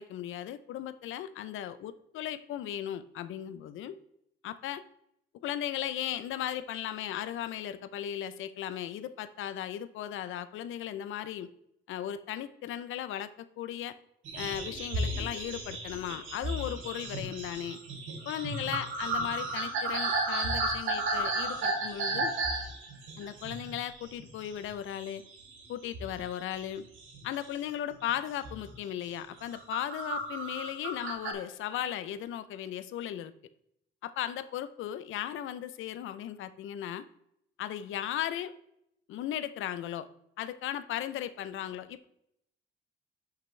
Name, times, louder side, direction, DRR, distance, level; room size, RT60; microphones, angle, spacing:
voice 1, 0.0-3.9 4.4-4.8 5.4-11.5 11.9-13.9 14.4-17.8 18.3-22.3 23.2-25.2 25.7-26.8 27.2-33.3 34.0-37.0 37.6-38.5 39.1-40.1 40.4-42.0, left 11 dB, 80° left, 14 dB, 0.7 m, -36 dB
sound 1, 14.2-24.7 25.0-25.7 25.9-27.4 27.9-28.1 28.4-28.7 29.2-31.3, right 2 dB, 85° right, 2.7 m, -34 dB
10.5 x 5.9 x 3.3 m, 0.77 s
cardioid pair, 90°, 20 cm